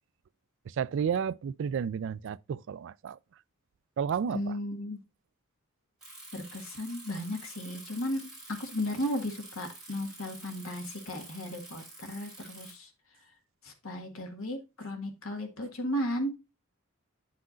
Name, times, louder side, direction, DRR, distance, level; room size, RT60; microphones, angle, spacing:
voice 1, 0.7-3.2 4.0-4.6, right 7 dB, 60° right, 0.3 m, -32 dB
voice 2, 4.3-5.0 6.3-8.3 8.6-12.9 13.6-16.3, left 1 dB, 75° left, 1.6 m, -35 dB
Bicycle, 6.0-12.7, right 2 dB, ahead, 3.6 m, -48 dB
9.4 x 5.7 x 2.5 m
head